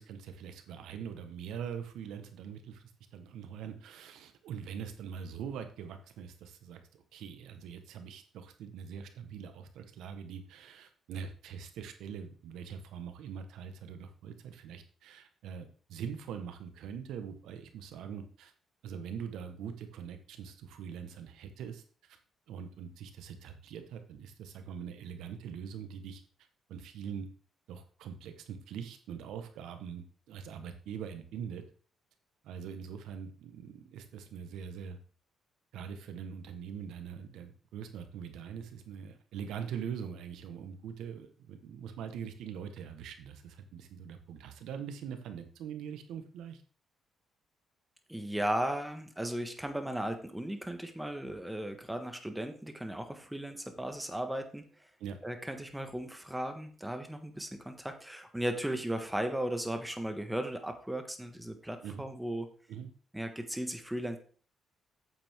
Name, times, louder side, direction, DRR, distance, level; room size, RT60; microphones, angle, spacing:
voice 1, 0.0-2.8 3.1-18.5 18.8-22.2 22.5-26.2 26.7-27.3 27.7-31.6 32.4-35.0 35.7-46.6 55.0-55.2 61.8-62.0 62.7-62.9, right 7 dB, 85° right, 8 dB, 1.2 m, -43 dB
voice 2, 48.1-54.7 55.2-62.5 63.1-64.2, right 1 dB, 5° right, 7 dB, 1.5 m, -36 dB
8.6 x 7.4 x 3.7 m, 0.42 s
cardioid pair, 90°, 0 cm